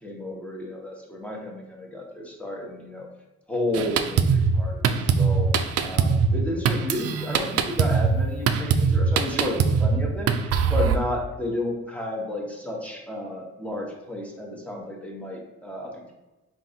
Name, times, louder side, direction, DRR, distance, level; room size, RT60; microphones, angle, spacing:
voice 1, 0.0-3.1 3.5-5.5 5.8-16.1, left 1 dB, 5° left, -2 dB, 1.0 m, -32 dB
Drum kit, 3.7-11.0, right 5 dB, 55° right, 0.4 m, -22 dB
3.8 x 2.6 x 3.9 m, 1.1 s
cardioid pair, 90°, 30 cm